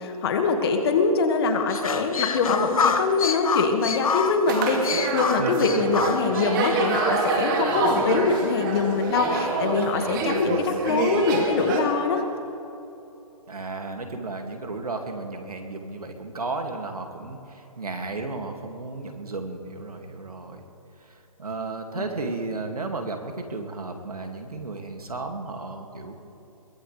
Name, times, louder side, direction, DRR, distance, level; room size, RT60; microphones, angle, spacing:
voice 1, 0.0-12.2 21.9-22.0, left 4 dB, 45° left, 5 dB, 1.9 m, -24 dB
sound 1, 1.7-6.8, left 5 dB, 70° left, 1.2 m, -27 dB
sound 2, 4.5-11.8, right 3 dB, 35° right, 2.4 m, -26 dB
voice 2, 5.4-6.1 9.9-10.8 13.5-20.6 21.4-26.1, right 3 dB, 90° right, 4 dB, 2.2 m, -34 dB
22.0 x 18.5 x 3.3 m, 2.9 s
hypercardioid pair, 145°, 19 cm